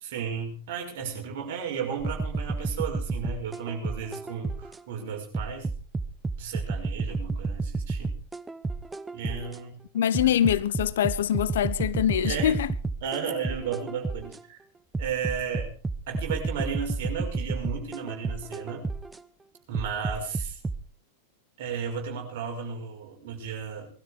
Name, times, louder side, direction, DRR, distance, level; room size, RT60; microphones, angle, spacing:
voice 1, 0.0-5.7 6.4-8.1 9.1-9.8 12.2-12.5 13.0-14.6 15.0-15.7 16.1-18.9 19.7-20.6 21.6-23.9, right 6 dB, 50° right, 6.0 m, -34 dB
sound 1, 2.0-4.8 5.3-9.6 10.1-14.4 14.9-19.2 19.7-20.8, right 3 dB, 10° right, 0.9 m, -31 dB
voice 2, 9.9-12.7, left 10 dB, 60° left, 0.9 m, -24 dB
21.0 x 12.5 x 4.8 m
figure-of-eight pair, 90°, 0 cm